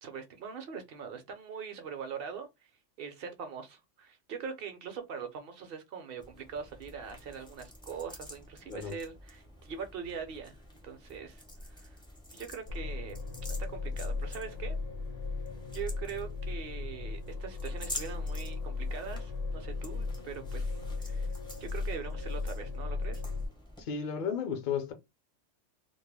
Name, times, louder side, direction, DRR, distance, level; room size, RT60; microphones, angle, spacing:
voice 1, 0.0-2.7 3.0-10.6 10.8-12.0 12.3-13.3 13.7-14.8 15.7-20.7 21.0-21.3 21.6-23.2, right 6 dB, 60° right, 0.7 m, -42 dB
sound 1, 6.2-23.8, left 1 dB, 5° left, 0.5 m, -49 dB
sound 2, 12.7-23.5, left 3 dB, 85° left, 0.3 m, -36 dB
voice 2, 23.8-24.9, left 7 dB, 55° left, 0.6 m, -33 dB
2.3 x 2.1 x 3.2 m
omnidirectional pair, 1.3 m